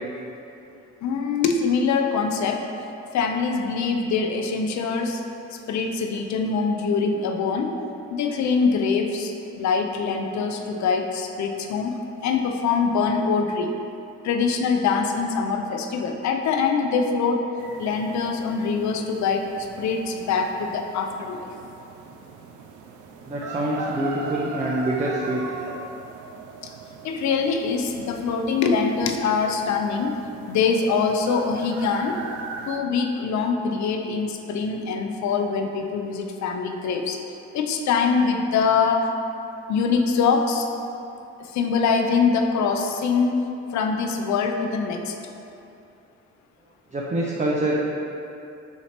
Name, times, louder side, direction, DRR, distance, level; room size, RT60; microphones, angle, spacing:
voice 1, 1.0-2.6 3.1-5.2 5.7-7.7 8.1-11.9 12.2-13.7 14.2-17.4 17.8-19.5 19.8-21.5 26.6-26.7 27.0-30.2 30.5-32.2 32.7-37.2 37.5-39.1 39.7-40.7 41.4-43.4 43.7-45.1, left 5 dB, 65° left, 4 dB, 0.5 m, -23 dB
sound 1, 17.6-32.8, right 5 dB, 80° right, 0.5 m, -39 dB
voice 2, 23.2-25.4 46.9-47.8, right 1 dB, 25° right, -4 dB, 0.5 m, -25 dB
5.7 x 2.8 x 3.3 m, 2.8 s
cardioid pair, 90°, 30 cm